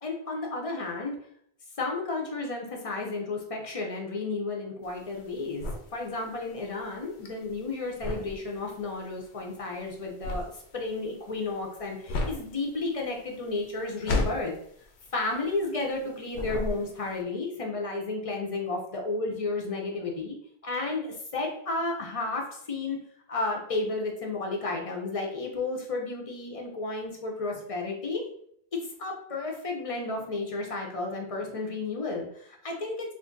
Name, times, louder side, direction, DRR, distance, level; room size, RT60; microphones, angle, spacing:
voice 1, 0.0-1.2 1.8-10.4 10.7-14.5 15.1-20.4 20.6-23.0 23.3-28.2 29.0-33.1, left 3 dB, 45° left, 0 dB, 0.5 m, -32 dB
sonido sabana moviendose, 4.8-16.0 16.3-17.2, left 2 dB, 85° left, 0.8 m, -34 dB
2.5 x 2.4 x 3.7 m, 0.68 s
omnidirectional pair, 1.1 m